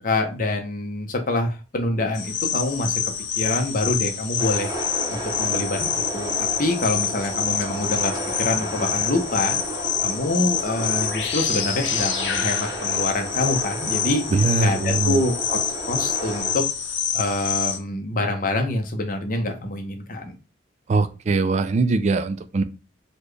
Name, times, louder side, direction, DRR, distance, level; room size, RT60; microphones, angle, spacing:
voice 1, 0.0-4.7 5.1-8.1 8.4-9.6 10.0-14.2 14.6-16.6 17.1-20.4, left 2 dB, 50° left, 4 dB, 0.7 m, -26 dB
sound 1, 2.1-17.8, left 8 dB, 80° left, 0.6 m, -27 dB
sound 2, 4.4-16.5, right 1 dB, 20° right, 0.7 m, -33 dB
voice 2, 14.3-15.2 20.9-22.6, right 3 dB, 40° right, 10 dB, 0.3 m, -21 dB
4.0 x 2.2 x 3.2 m, 0.32 s
head